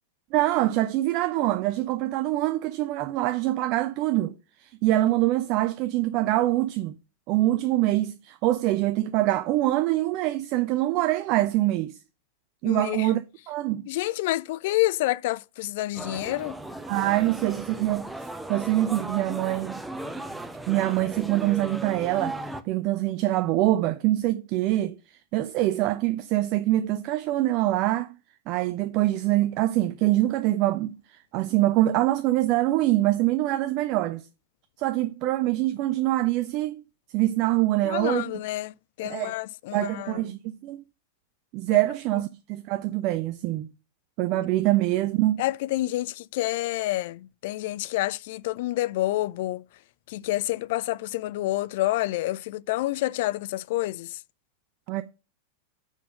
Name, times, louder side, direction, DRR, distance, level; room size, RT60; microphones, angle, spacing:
voice 1, 0.3-4.3 4.6-6.9 7.3-12.0 12.6-13.9 16.9-18.1 18.5-19.8 20.7-22.4 22.7-25.0 25.3-28.1 28.5-30.9 31.3-34.2 34.8-36.8 37.1-38.3 39.0-39.3 39.7-40.8 41.5-43.7 44.2-45.3 54.9-55.0, right 16 dB, 40° right, 0.5 m, -24 dB
voice 2, 12.7-13.1 13.9-16.6 37.8-40.2 41.7-41.8 45.4-49.6 50.1-54.2, left 17 dB, 50° left, 0.3 m, -28 dB
sound 1, 15.9-22.6, right 1 dB, 5° right, 0.8 m, -36 dB
6.3 x 5.5 x 6.4 m
figure-of-eight pair, 90°, 0 cm